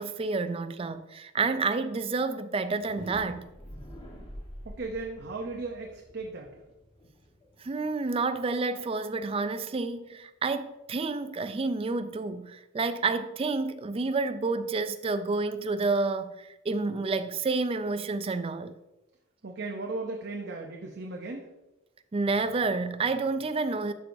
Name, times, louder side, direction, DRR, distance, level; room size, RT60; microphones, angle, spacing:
voice 1, 0.0-3.4 7.6-18.7 22.1-23.9, right 3 dB, 30° right, 0.3 m, -29 dB
sound 1, 2.7-8.5, equal, 25° left, 1.3 m, -47 dB
voice 2, 4.6-6.6 19.4-21.4, right 3 dB, 55° right, 0.7 m, -36 dB
12.0 x 4.5 x 2.6 m
head